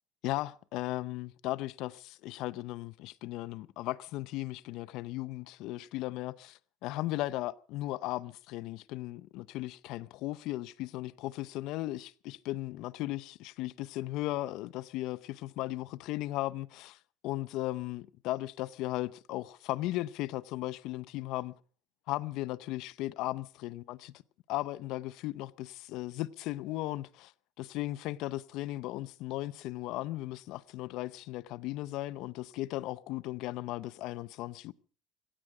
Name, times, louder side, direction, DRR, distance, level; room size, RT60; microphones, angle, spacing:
voice 1, 0.2-17.0 17.2-21.5 22.1-24.1 24.5-27.3 27.6-34.7, left 17 dB, 65° left, 0.7 m, -36 dB
16.5 x 16.5 x 4.9 m
cardioid pair, 160°, 0 cm